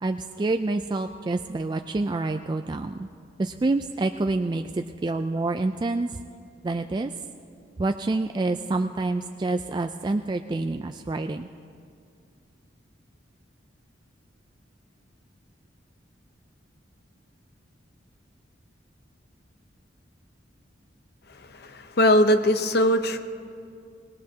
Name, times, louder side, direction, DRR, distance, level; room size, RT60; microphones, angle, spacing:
voice 1, 0.0-3.1 3.4-6.2 6.6-7.1 7.8-11.5, right 2 dB, 25° right, 6 dB, 0.3 m, -27 dB
voice 2, 21.3-23.2, left 1 dB, 55° left, 8 dB, 0.8 m, -21 dB
25.0 x 19.0 x 2.8 m, 2.3 s
head